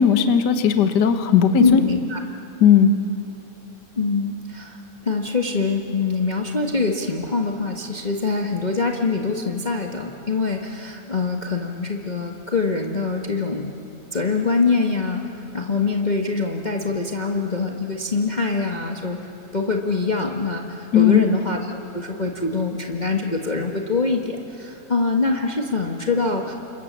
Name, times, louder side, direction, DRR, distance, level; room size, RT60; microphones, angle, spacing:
voice 1, 0.0-1.8 2.6-2.9 20.9-21.2, left 7 dB, 55° left, 7 dB, 1.3 m, -16 dB
voice 2, 1.6-2.2 4.0-4.8 5.0-13.7 14.1-15.2 15.5-19.2 19.5-26.5, left 4 dB, 85° left, 1 dB, 0.4 m, -24 dB
29.5 x 26.5 x 7.4 m, 2.9 s
omnidirectional pair, 3.5 m